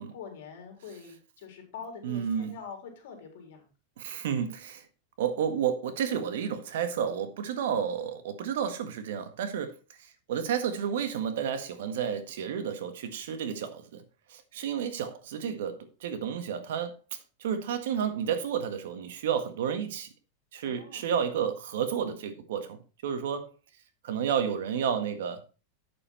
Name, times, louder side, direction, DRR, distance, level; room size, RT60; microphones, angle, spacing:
voice 1, 0.0-3.7 20.6-21.1, left 6 dB, 65° left, 3.8 m, -45 dB
voice 2, 2.0-2.5 4.0-4.8 5.2-9.7 10.0-14.0 14.3-17.0 17.4-20.1 20.5-23.5 24.0-25.4, right 8 dB, 75° right, 1.7 m, -31 dB
8.7 x 6.8 x 4.4 m
supercardioid pair, 160°, 0 cm